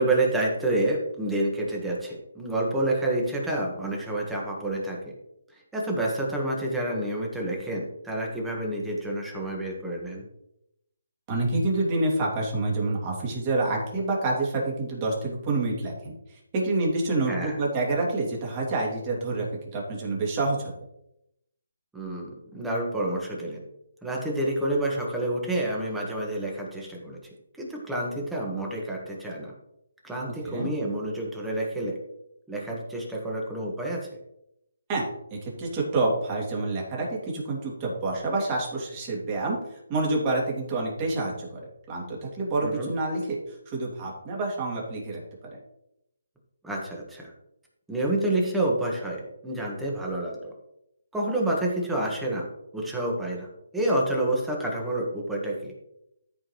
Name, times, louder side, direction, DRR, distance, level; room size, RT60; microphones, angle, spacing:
voice 1, 0.0-5.0 5.5-10.2 17.3-17.6 21.9-23.6 24.0-27.2 27.6-29.5 30.0-32.0 32.5-34.1 42.6-42.9 46.6-47.3 47.9-50.5 51.1-52.5 52.7-53.5 53.7-55.7, right 1 dB, 5° right, -2 dB, 1.7 m, -28 dB
voice 2, 11.3-19.5 19.7-20.7 30.4-30.7 34.9-45.2, right 2 dB, 25° right, -3 dB, 2.8 m, -28 dB
13.5 x 5.1 x 3.2 m, 0.82 s
hypercardioid pair, 155°, 0 cm